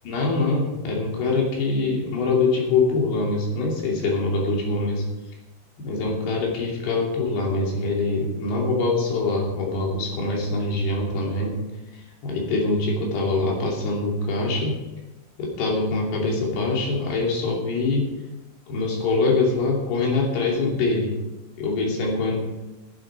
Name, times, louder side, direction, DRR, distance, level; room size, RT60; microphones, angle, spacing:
voice 1, 0.0-5.1 5.8-11.7 12.2-14.8 15.4-18.1 18.7-21.1 21.6-22.4, left 3 dB, 60° left, -1 dB, 4.7 m, -24 dB
15.5 x 8.9 x 4.9 m, 1.0 s
omnidirectional pair, 5.4 m